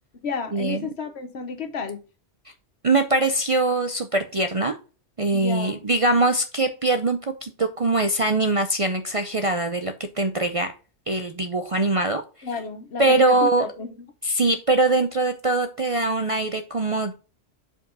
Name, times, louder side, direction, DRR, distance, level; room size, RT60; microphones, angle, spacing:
voice 1, 0.2-2.0 5.3-5.8 12.4-14.1, left 4 dB, 65° left, 1.2 m, -32 dB
voice 2, 2.8-4.7 5.2-10.7 11.1-12.2 13.0-13.6 14.2-17.1, right 2 dB, 40° right, 0.5 m, -22 dB
5.4 x 4.9 x 5.3 m
omnidirectional pair, 1.2 m